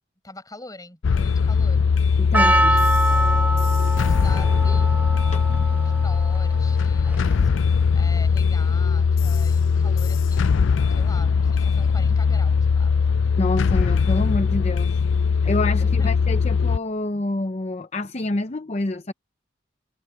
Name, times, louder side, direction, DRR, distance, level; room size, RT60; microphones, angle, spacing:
voice 1, 0.2-1.9 2.4-2.8 3.1-7.5 7.9-13.2 15.8-16.1, left 2 dB, 20° left, 7.9 m, -43 dB
sound 1, 1.0-16.8, left 5 dB, 75° left, 0.4 m, -20 dB
voice 2, 2.2-2.8 5.3-5.4 13.4-15.0 15.4-19.1, left 2 dB, 35° left, 0.7 m, -27 dB
Percussion, 2.3-7.6, right 1 dB, 10° right, 1.0 m, -25 dB
head